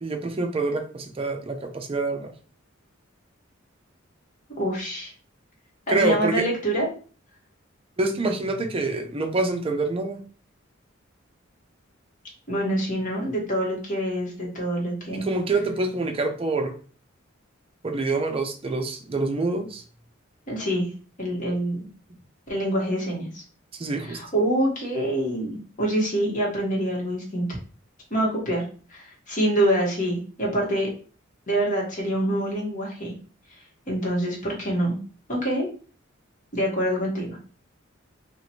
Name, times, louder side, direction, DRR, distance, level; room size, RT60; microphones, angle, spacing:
voice 1, 0.0-2.3 5.9-6.5 8.0-10.2 15.1-16.7 17.8-19.8 23.7-24.2, right 3 dB, 30° right, 5 dB, 0.5 m, -26 dB
voice 2, 4.6-5.1 5.9-6.9 12.5-15.3 20.5-20.9 21.2-21.8 22.5-23.4 24.0-27.5 28.1-28.6 28.9-30.9 31.5-33.1 33.9-35.0 35.3-35.7 36.5-37.4, right 1 dB, 40° left, -3 dB, 1.3 m, -25 dB
2.9 x 2.5 x 4.1 m, 0.40 s
head